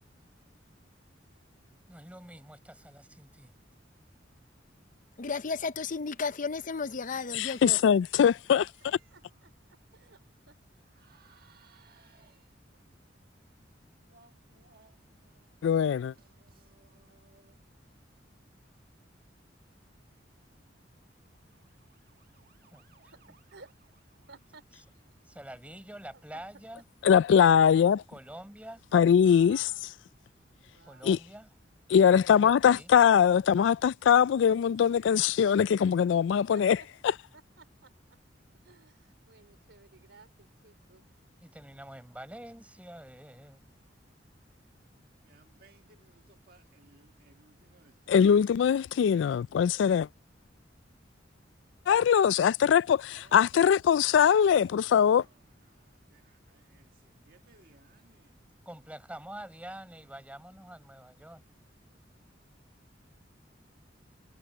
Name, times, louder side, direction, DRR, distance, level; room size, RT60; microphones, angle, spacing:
voice 1, 1.9-3.5 22.7-23.3 25.2-26.8 28.1-28.8 30.9-31.5 32.2-32.9 41.4-43.6 58.7-61.4, right 1 dB, 5° right, 5.5 m, -46 dB
voice 2, 5.2-7.8, left 4 dB, 45° left, 0.6 m, -33 dB
voice 3, 7.3-8.6 15.6-16.1 27.0-28.0 28.9-29.6 31.0-31.2 31.9-36.8 37.0-37.1 48.1-50.1 51.9-55.2, left 8 dB, 75° left, 0.3 m, -22 dB
voice 4, 8.2-10.5 23.1-23.7 24.3-24.7 26.1-26.7 28.7-28.8 29.2-29.9 30.7-31.0 35.6-35.7 36.5-36.9 37.3-38.2 38.6-41.1, right 4 dB, 90° right, 3.4 m, -56 dB
voice 5, 10.9-12.4 14.0-15.5 16.2-17.5 21.9-23.1 24.2-24.3 45.2-48.1 53.1-53.4 53.9-54.0 55.0-55.2 55.7-58.3, right 3 dB, 55° right, 1.6 m, -63 dB
head